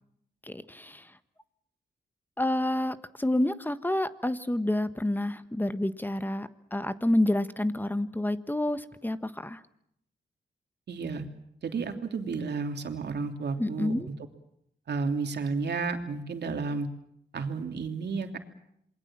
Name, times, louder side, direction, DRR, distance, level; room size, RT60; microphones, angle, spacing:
voice 1, 0.4-1.0 2.4-9.6 13.6-14.1, left 1 dB, 10° left, 11 dB, 1.4 m, -29 dB
voice 2, 10.9-11.2 11.6-14.1 14.9-16.9 17.3-18.4, right 4 dB, 70° right, 5 dB, 3.0 m, -32 dB
27.5 x 21.5 x 7.5 m, 0.75 s
cardioid pair, 75°, 18 cm